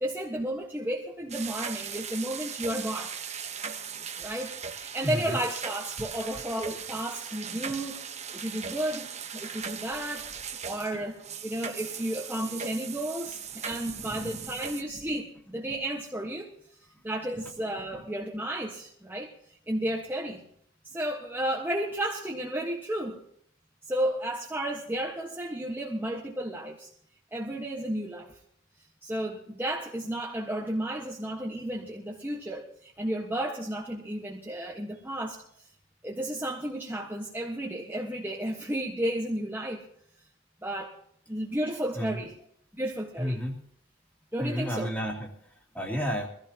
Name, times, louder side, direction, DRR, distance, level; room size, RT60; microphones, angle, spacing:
voice 1, 0.0-3.1 4.2-9.1 9.3-16.5 17.0-19.3 19.7-20.4 20.8-23.2 23.9-26.9 27.3-28.3 29.0-35.4 36.0-39.8 40.6-40.9 41.3-42.3 42.8-43.4 44.3-44.9, right 1 dB, 10° right, -2 dB, 1.4 m, -33 dB
sound 1, 1.3-14.8, right 7 dB, 35° right, 1.1 m, -39 dB
voice 2, 5.0-5.4 7.7-7.8 13.7-14.5 17.3-17.4 17.9-18.0 41.9-42.3 43.2-43.6 44.4-46.3, equal, 10° left, -1 dB, 2.9 m, -33 dB
23.5 x 16.0 x 2.9 m, 0.70 s
head